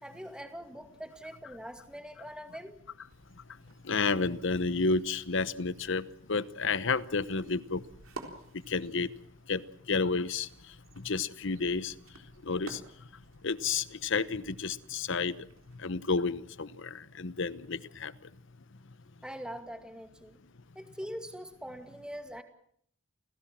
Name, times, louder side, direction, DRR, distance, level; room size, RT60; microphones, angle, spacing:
voice 1, 0.0-2.8 19.2-20.4 20.8-22.4, equal, 5° right, 7 dB, 2.2 m, -43 dB
sound 1, 3.0-15.9, right 2 dB, 85° right, 3.8 m, -53 dB
voice 2, 3.8-7.8 8.7-9.1 9.5-9.6 9.9-10.5 11.0-11.9 12.5-12.8 13.4-15.4 15.8-18.1, left 4 dB, 65° left, 16 dB, 1.0 m, -31 dB
28.5 x 17.5 x 7.5 m, 0.66 s
head